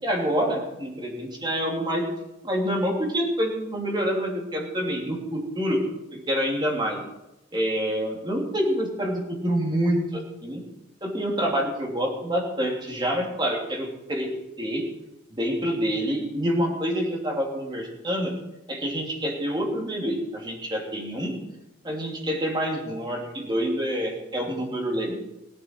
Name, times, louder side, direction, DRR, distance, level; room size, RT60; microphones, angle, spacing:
voice 1, 0.0-2.1 2.4-5.8 6.1-7.0 7.5-10.6 11.0-14.3 14.6-14.9 15.3-18.4 18.7-21.4 21.8-25.1, equal, 25° right, -1 dB, 3.0 m, -27 dB
17.0 x 11.5 x 4.7 m, 0.91 s
head